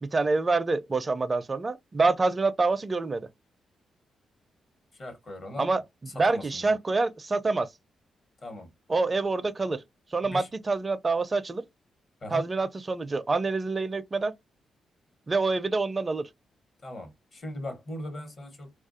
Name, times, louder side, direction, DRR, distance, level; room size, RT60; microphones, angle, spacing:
voice 1, 0.0-3.3 5.6-5.8 6.1-7.7 8.9-9.8 10.1-11.6 12.3-14.3 15.3-16.2, right 3 dB, 35° right, 0.4 m, -26 dB
voice 2, 4.9-5.7 6.3-6.7 8.4-8.7 10.2-10.5 12.2-12.4 16.8-18.7, left 1 dB, 55° left, 1.1 m, -39 dB
2.4 x 2.3 x 2.5 m
hypercardioid pair, 45°, 0 cm